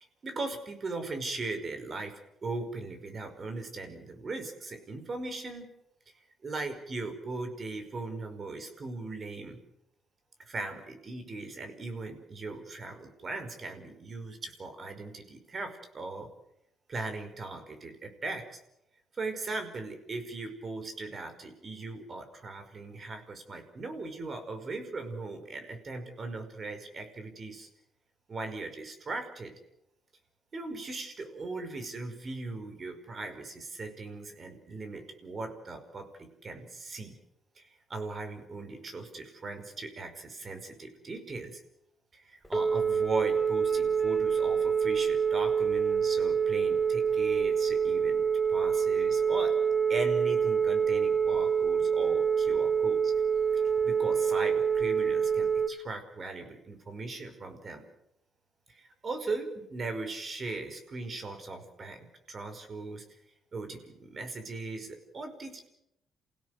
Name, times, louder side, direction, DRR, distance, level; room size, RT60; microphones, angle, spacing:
voice 1, 0.2-2.1 2.4-5.7 6.1-9.6 10.4-16.3 16.9-18.6 19.1-27.7 28.3-29.5 30.5-37.2 37.6-41.6 42.1-49.5 49.9-53.1 53.5-57.9 58.7-63.2 63.5-65.7, right 3 dB, 40° right, 7 dB, 5.4 m, -39 dB
Telephone, 42.4-55.7, right 6 dB, 5° left, 1.9 m, -26 dB
28.5 x 17.0 x 8.0 m, 0.82 s
cardioid pair, 90°, 0 cm